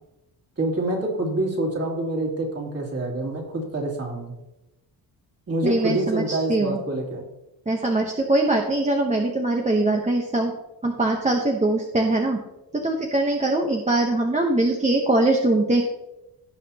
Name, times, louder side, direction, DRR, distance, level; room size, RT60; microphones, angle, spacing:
voice 1, 0.6-4.3 5.5-7.2, right 2 dB, 35° right, -2 dB, 2.9 m, -26 dB
voice 2, 5.6-6.8 7.7-10.5 10.8-12.4 12.7-15.8, right 2 dB, 15° right, 1 dB, 0.9 m, -22 dB
16.5 x 5.8 x 2.9 m, 0.94 s
cardioid pair, 120°, 41 cm